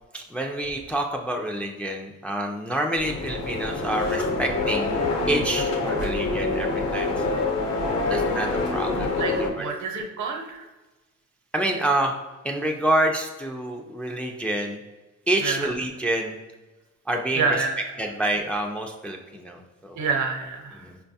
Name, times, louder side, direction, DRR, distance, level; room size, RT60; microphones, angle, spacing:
voice 1, 0.1-5.0 5.3-7.5 8.0-9.2 9.6-9.7 11.5-12.1 12.4-14.8 15.3-16.4 17.1-17.5 18.0-20.0 20.8-21.0, right 1 dB, 5° left, 2 dB, 0.3 m, -27 dB
sound 1, 3.0-9.5, left 3 dB, 60° left, 0.9 m, -26 dB
voice 2, 9.1-10.7 15.4-15.7 17.3-17.8 19.9-20.9, right 4 dB, 70° right, 3 dB, 0.7 m, -28 dB
4.5 x 2.2 x 2.7 m, 1.2 s
cardioid pair, 90°, 30 cm